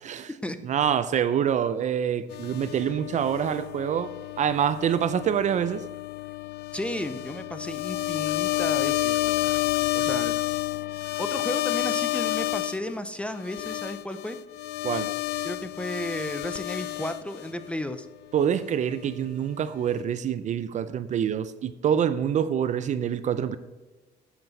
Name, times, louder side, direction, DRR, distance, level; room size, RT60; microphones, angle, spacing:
voice 1, 0.6-4.1 4.4-5.8 14.8-15.1 18.3-23.6, right 8 dB, 45° right, 13 dB, 0.5 m, -26 dB
sound 1, 2.3-12.8 13.4-17.7, left 17 dB, 75° left, 0.5 m, -30 dB
voice 2, 6.7-9.5 9.9-10.4 11.2-14.4 15.4-18.1, left 1 dB, 5° left, 10 dB, 0.6 m, -33 dB
8.0 x 7.5 x 4.0 m, 1.2 s
cardioid pair, 110°, 17 cm